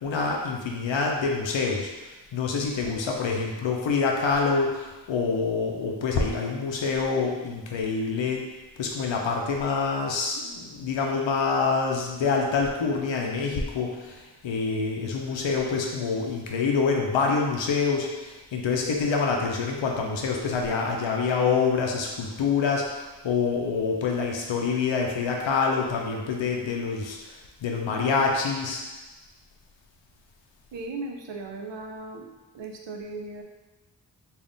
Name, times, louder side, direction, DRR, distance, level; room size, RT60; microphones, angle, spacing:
voice 1, 0.0-1.9 2.3-8.4 8.8-22.8 23.2-27.2 27.6-28.8, left 4 dB, 80° left, 0 dB, 0.6 m, -26 dB
voice 2, 30.7-32.3 32.5-33.4, right 3 dB, 75° right, 2 dB, 0.6 m, -37 dB
3.4 x 2.4 x 3.8 m, 1.1 s
wide cardioid pair, 80°, 45 cm